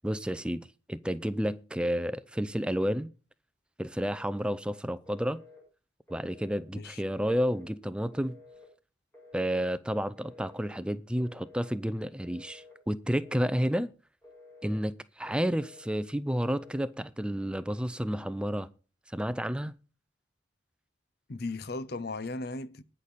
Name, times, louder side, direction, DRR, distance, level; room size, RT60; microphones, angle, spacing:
voice 1, 0.0-3.1 3.8-5.4 6.1-8.4 9.3-13.9 14.6-18.7 19.1-19.7, equal, 5° right, 0.5 m, -31 dB
Telephone, 4.0-4.6 5.1-5.6 6.1-6.6 7.1-7.7 8.1-8.7 9.1-9.7 10.2-10.7 11.2-11.7 12.2-12.8 13.2-13.8 14.2-14.8 15.3-15.8 16.3-16.8, left 3 dB, 10° left, 6.1 m, -53 dB
voice 2, 21.3-22.8, left 2 dB, 55° left, 0.7 m, -36 dB
19.5 x 6.6 x 4.1 m
head